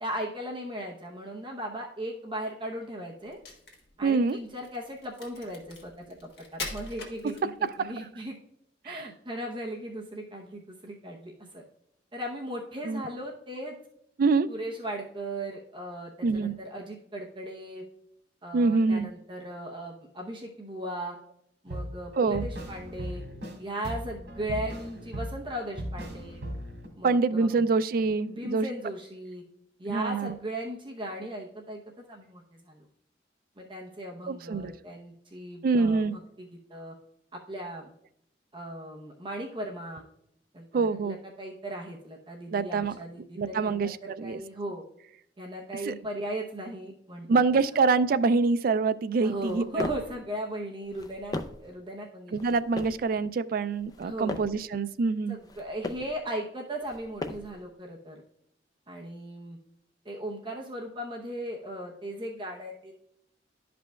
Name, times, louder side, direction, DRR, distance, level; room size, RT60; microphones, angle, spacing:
voice 1, 0.0-3.4 4.0-8.4 8.8-11.6 12.1-13.8 14.5-17.8 18.4-21.2 21.6-23.2 23.6-26.4 27.0-27.5 28.3-29.4 29.8-32.9 33.6-37.0 37.3-37.9 38.5-40.0 40.5-44.8 45.4-47.3 49.2-51.3 51.6-52.4 54.0-54.4 55.3-58.2 58.9-59.6 60.0-62.9, right 1 dB, 30° right, 0 dB, 0.7 m, -37 dB
Crack, 3.2-7.9, left 3 dB, 65° left, 1.6 m, -42 dB
voice 2, 4.0-4.4 7.6-7.9 8.9-9.1 12.8-13.0 14.2-14.5 16.2-16.5 18.5-19.1 22.2-22.4 27.0-28.7 29.9-30.3 34.3-34.7 35.6-36.1 40.7-41.2 42.5-43.0 43.4-44.4 45.9-46.0 47.3-49.9 52.3-55.4, right 4 dB, 55° right, 14 dB, 0.3 m, -25 dB
sound 1, 21.7-23.6 23.8-26.9, equal, 85° right, 2.0 m, -38 dB
Footsteps Mountain Boots Rock Jump Sequence Mono, 49.3-50.2 50.8-51.7 52.4-53.1 53.8-54.6 55.3-56.2 56.8-57.6, left 2 dB, 20° left, 0.4 m, -38 dB
11.5 x 5.1 x 2.2 m, 0.76 s
head